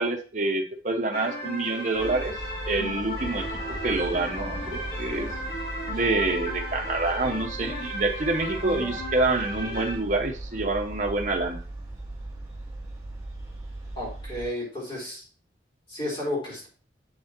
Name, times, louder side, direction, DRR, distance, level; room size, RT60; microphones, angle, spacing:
voice 1, 0.0-2.3 2.7-3.5 3.8-5.3 5.9-11.6, right 2 dB, 45° right, 3 dB, 0.9 m, -27 dB
sound 1, 1.1-10.0, left 1 dB, 60° left, 2.5 m, -35 dB
sound 2, 1.9-14.5, right 2 dB, 25° right, 2.6 m, -38 dB
voice 2, 14.0-15.2 15.9-16.7, left 1 dB, 30° left, -5 dB, 3.8 m, -32 dB
7.3 x 6.2 x 2.9 m, 0.37 s
head